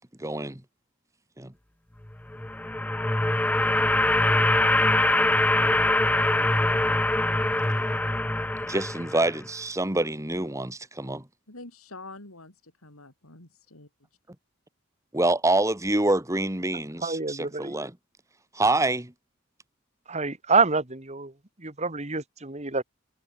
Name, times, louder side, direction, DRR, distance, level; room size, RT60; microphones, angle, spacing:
voice 1, 0.2-0.6 1.4-1.5 8.7-11.2 15.1-17.9 18.5-19.1, right 2 dB, 15° right, 1.8 m, -26 dB
sound 1, 2.3-9.4, left 1 dB, 5° left, 0.4 m, -23 dB
voice 2, 11.5-13.9, left 2 dB, 80° left, 5.0 m, -46 dB
voice 3, 17.0-17.8 20.1-21.3 21.6-22.8, right 4 dB, 30° right, 2.0 m, -26 dB
head